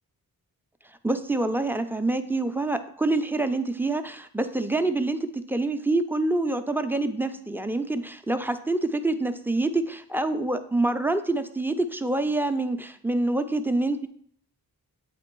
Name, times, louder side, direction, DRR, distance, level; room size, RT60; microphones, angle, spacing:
voice 1, 1.0-14.1, right 2 dB, 5° right, 9 dB, 0.3 m, -26 dB
8.1 x 3.0 x 4.5 m, 0.64 s
wide cardioid pair, 75°, 37 cm